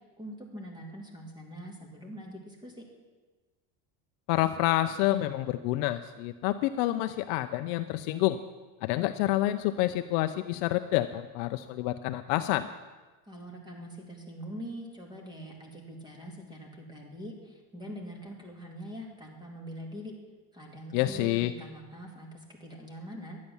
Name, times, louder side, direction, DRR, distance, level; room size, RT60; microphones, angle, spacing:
voice 1, 0.2-2.9 13.3-20.1 20.5-23.4, equal, 10° right, 1 dB, 2.3 m, -43 dB
voice 2, 4.3-8.4 8.8-12.7 20.9-21.5, left 15 dB, 65° left, 9 dB, 0.6 m, -28 dB
12.0 x 9.5 x 7.1 m, 1.3 s
cardioid pair, 145°, 41 cm